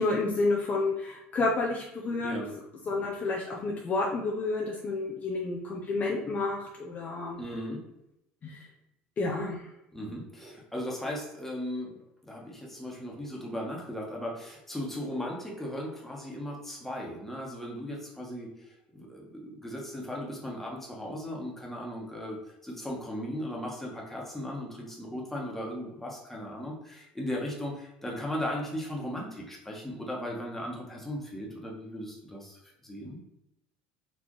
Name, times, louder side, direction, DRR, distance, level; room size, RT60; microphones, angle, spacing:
voice 1, 0.0-2.5 2.9-7.4 8.4-8.7 9.2-9.7, left 3 dB, 35° left, -1 dB, 0.7 m, -30 dB
voice 2, 2.2-2.5 7.4-7.8 9.9-11.9 12.2-18.5 18.9-22.4 22.6-33.2, equal, 5° left, -2 dB, 1.3 m, -37 dB
4.3 x 2.7 x 3.1 m, 0.85 s
supercardioid pair, 90°, 4 cm